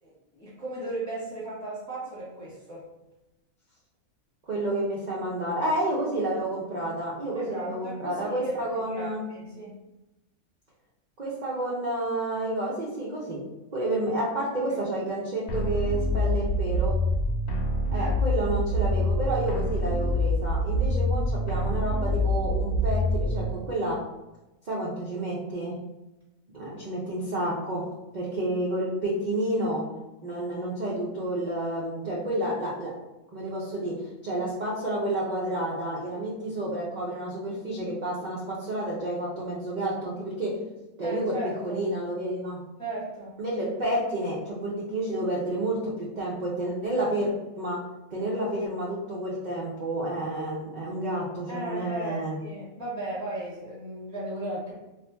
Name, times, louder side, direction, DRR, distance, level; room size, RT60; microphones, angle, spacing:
voice 1, 0.0-2.8 7.3-9.7 14.6-14.7 17.9-18.1 41.0-41.8 42.8-43.4 51.5-54.7, right 2 dB, 5° left, -9 dB, 1.0 m, -36 dB
voice 2, 4.4-9.2 11.2-13.4 13.7-17.0 17.9-24.0 24.7-25.8 26.5-27.8 28.1-29.8 30.2-32.9 33.3-40.6 41.0-41.4 41.6-42.6 43.4-47.8 48.1-52.4, right 1 dB, 55° right, -5 dB, 0.5 m, -30 dB
sound 1, 15.5-23.5, left 1 dB, 85° left, 0.5 m, -26 dB
2.9 x 2.4 x 3.3 m, 0.99 s
omnidirectional pair, 1.5 m